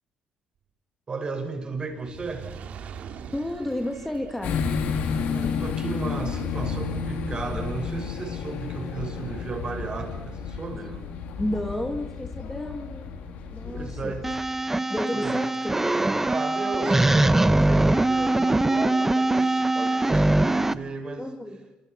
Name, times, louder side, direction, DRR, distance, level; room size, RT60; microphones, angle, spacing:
voice 1, 1.1-2.5 5.0-11.1 13.6-14.3 15.1-15.4 16.2-21.3, right 4 dB, 35° right, 5 dB, 6.3 m, -34 dB
Fire, 1.9-8.3 9.0-9.1, right 7 dB, 65° right, 2.8 m, -45 dB
voice 2, 3.3-4.7 11.4-13.1 13.5-14.2 14.9-15.8 21.2-21.7, left 1 dB, 10° left, 5 dB, 2.1 m, -31 dB
sound 1, 4.4-14.4, left 6 dB, 80° left, 3.5 m, -31 dB
sound 2, 14.2-20.7, right 2 dB, 10° right, 0.9 m, -22 dB
27.5 x 25.5 x 6.0 m, 0.93 s
cardioid pair, 100°, 3 cm